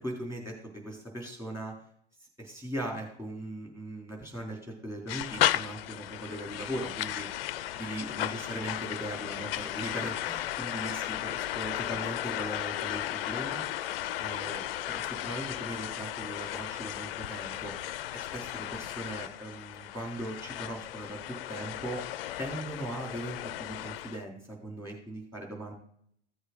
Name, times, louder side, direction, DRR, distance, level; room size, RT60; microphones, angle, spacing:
voice 1, 0.0-1.7 2.4-7.3 7.7-13.6 14.2-14.6 15.1-17.7 18.1-22.0 22.4-25.7, right 1 dB, 5° right, -1 dB, 3.3 m, -39 dB
sound 1, 5.1-24.2, left 13 dB, 55° left, 0.5 m, -35 dB
15.0 x 8.0 x 3.9 m, 0.65 s
figure-of-eight pair, 85°, 35 cm